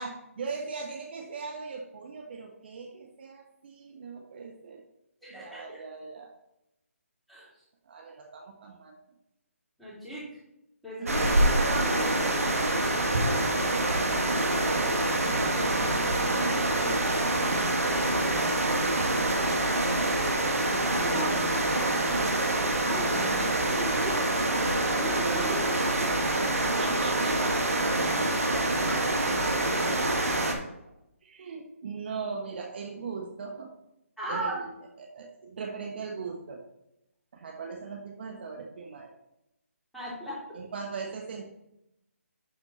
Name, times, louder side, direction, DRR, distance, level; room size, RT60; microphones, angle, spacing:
voice 1, 0.0-4.8 5.3-6.3 7.9-8.9 11.2-11.5 15.2-17.6 18.1-19.5 26.1-30.4 31.2-33.7 34.3-34.7 35.0-36.6 37.3-39.1 40.5-41.5, right 4 dB, 45° right, 2 dB, 1.2 m, -40 dB
voice 2, 5.2-5.8 7.3-7.5 9.8-10.3 10.8-11.3 11.6-12.1 20.6-21.6 22.8-24.2 24.6-26.1 34.2-34.6 39.9-40.6, right 1 dB, ahead, -9 dB, 3.2 m, -37 dB
sound 1, 11.1-30.5, right 1 dB, 80° right, 1.8 m, -26 dB
11.5 x 4.3 x 4.1 m, 0.85 s
figure-of-eight pair, 155°, 8 cm